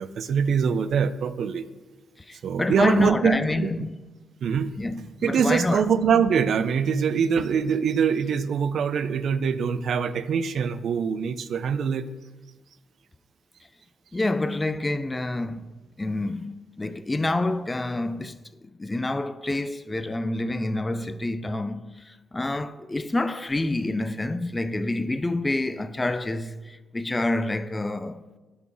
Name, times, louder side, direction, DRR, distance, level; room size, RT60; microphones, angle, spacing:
voice 1, 0.0-1.6 2.4-3.9 4.4-4.7 5.2-12.1, right 6 dB, 65° right, 0.4 m, -24 dB
voice 2, 2.2-3.9 4.8-5.9 14.1-18.4 18.8-28.2, left 2 dB, 20° left, 0.3 m, -28 dB
6.2 x 3.7 x 5.9 m
supercardioid pair, 55°, 0 cm